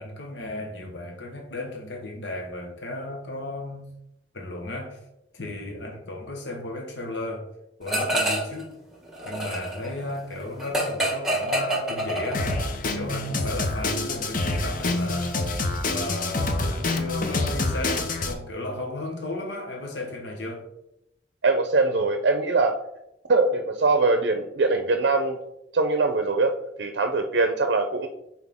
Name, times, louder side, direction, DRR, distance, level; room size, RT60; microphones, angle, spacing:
voice 1, 0.0-3.9 4.3-5.0 5.3-7.5 7.8-8.7 9.2-12.5 12.9-15.4 15.9-20.7, left 1 dB, 75° left, 1.1 m, -34 dB
sound 1, 7.9-8.6 8.9-12.7, right 1 dB, ahead, 1.3 m, -27 dB
Drum kit, 12.3-18.3, left 2 dB, 50° left, 0.7 m, -27 dB
voice 2, 21.4-22.8 23.3-25.4 25.7-28.1, right 3 dB, 70° right, 0.5 m, -22 dB
6.1 x 4.4 x 3.5 m
head